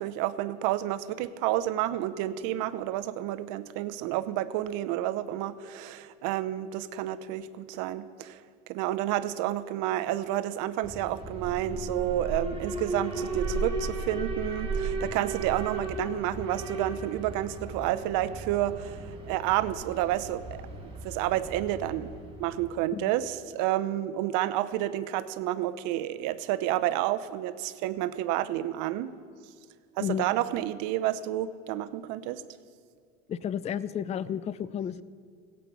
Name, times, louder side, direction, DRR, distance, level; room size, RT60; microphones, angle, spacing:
voice 1, 0.0-8.4 8.7-20.4 21.0-22.1 22.4-29.1 30.0-32.4, right 13 dB, 65° right, 13 dB, 0.7 m, -30 dB
Alarm, 10.8-22.8, right 2 dB, 15° right, 3.6 m, -35 dB
voice 2, 33.3-35.0, left 9 dB, 20° left, 17 dB, 0.3 m, -32 dB
16.5 x 8.4 x 4.7 m, 2.2 s
supercardioid pair, 95°, 33 cm